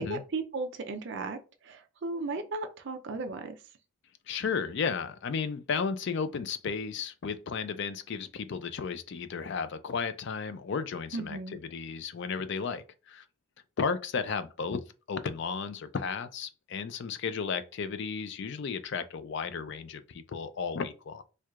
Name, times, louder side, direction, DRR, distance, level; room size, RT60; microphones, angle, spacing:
voice 1, 0.0-1.4 1.6-3.5 11.1-11.6, right 3 dB, 55° right, 0.4 m, -35 dB
voice 2, 4.3-13.2 13.8-21.2, left 5 dB, 55° left, 0.4 m, -34 dB
4.4 x 2.3 x 2.3 m
head